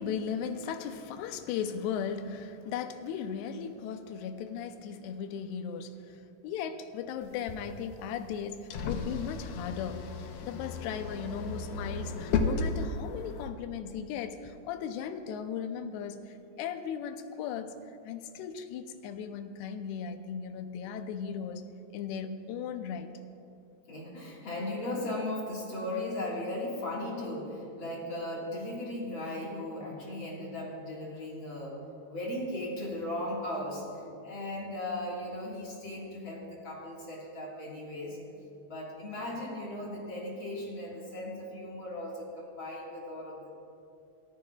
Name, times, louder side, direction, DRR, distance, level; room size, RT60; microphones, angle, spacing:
voice 1, 0.0-17.7 18.0-21.6 21.9-23.1, left 7 dB, 90° left, 8 dB, 2.8 m, -37 dB
sound 1, 7.2-13.5, left 4 dB, 75° left, 2.0 m, -34 dB
voice 2, 23.9-31.8 32.1-38.2 38.7-43.5, left 1 dB, 40° left, -4 dB, 1.9 m, -37 dB
25.0 x 13.5 x 2.4 m, 2.6 s
omnidirectional pair, 4.6 m